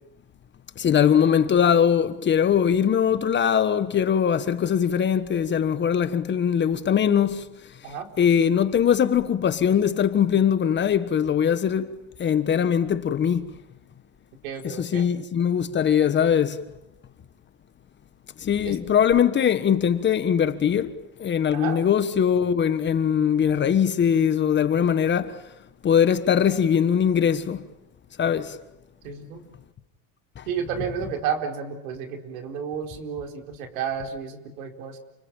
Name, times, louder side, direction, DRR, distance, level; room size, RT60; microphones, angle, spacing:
voice 1, 0.8-7.5 8.2-11.9 12.2-13.5 14.6-16.6 18.4-20.9 21.2-25.4 25.8-27.6 28.2-28.6 30.4-30.5, left 8 dB, 25° left, 1.4 m, -21 dB
voice 2, 14.4-15.1 18.6-18.8 21.5-21.8 29.0-29.4 30.5-35.0, right 7 dB, 80° right, 4.4 m, -31 dB
29.5 x 20.5 x 9.1 m
supercardioid pair, 130°, 42 cm